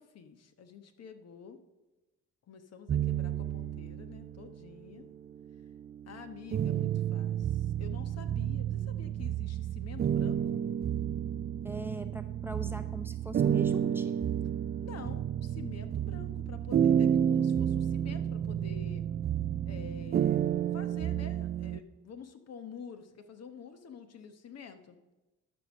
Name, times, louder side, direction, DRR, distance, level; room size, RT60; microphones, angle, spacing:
voice 1, 0.0-1.6 2.5-5.1 6.1-10.6 14.7-19.0 19.6-25.0, left 6 dB, 55° left, 9 dB, 1.1 m, -48 dB
sound 1, 2.9-4.6 5.2-21.8, right 9 dB, 35° right, 0.4 m, -31 dB
voice 2, 11.6-14.2, right 2 dB, 5° right, 7 dB, 0.7 m, -41 dB
12.5 x 5.4 x 6.3 m, 1.1 s
cardioid pair, 90°, 30 cm